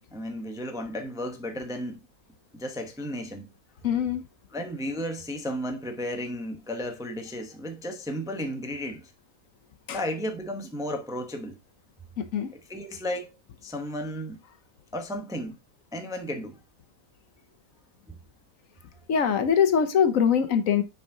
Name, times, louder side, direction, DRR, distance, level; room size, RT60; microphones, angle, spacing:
voice 1, 0.1-2.1 2.5-3.5 4.5-9.1 9.9-11.6 12.5-13.3 13.6-14.4 14.9-15.6 15.9-16.6 18.1-18.2, equal, 5° right, 0.6 m, -34 dB
voice 2, 3.8-4.2 9.9-10.0 12.2-12.5 19.1-20.8, left 7 dB, 70° left, 1.2 m, -23 dB
6.2 x 4.9 x 3.7 m
omnidirectional pair, 1.5 m